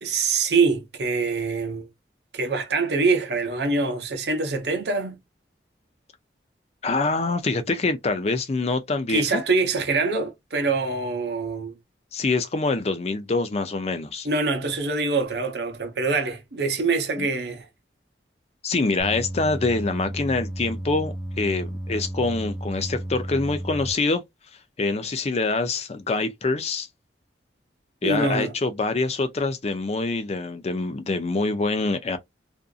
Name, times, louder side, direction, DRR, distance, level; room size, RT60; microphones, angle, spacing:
voice 1, 0.0-1.9 2.3-5.2 9.1-11.7 14.2-17.7 28.0-28.5, right 4 dB, 70° right, 0.7 m, -24 dB
voice 2, 6.8-9.4 12.1-14.3 17.2-17.3 18.6-24.2 24.8-26.9 28.0-32.2, left 3 dB, 35° left, 0.5 m, -25 dB
sound 1, 19.0-23.9, right 1 dB, 25° right, 0.5 m, -33 dB
2.5 x 2.5 x 2.3 m
head